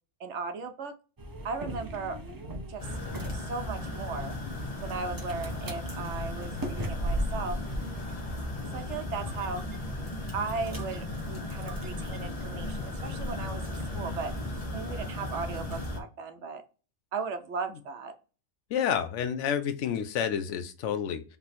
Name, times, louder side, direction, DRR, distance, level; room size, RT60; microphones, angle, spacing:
voice 1, 0.2-0.9 1.4-2.2 2.7-2.8 3.3-4.4 4.8-7.6 8.7-9.6 10.3-14.3 14.7-16.6 17.1-18.1, right 4 dB, 80° right, 6 dB, 1.0 m, -36 dB
sound 1, 1.2-14.3, equal, 25° right, 0.5 m, -39 dB
sound 2, 2.8-16.0, left 1 dB, 35° left, 1.0 m, -36 dB
voice 2, 18.7-21.2, left 8 dB, 85° left, 10 dB, 0.9 m, -29 dB
3.3 x 2.9 x 4.1 m, 0.35 s
omnidirectional pair, 1.2 m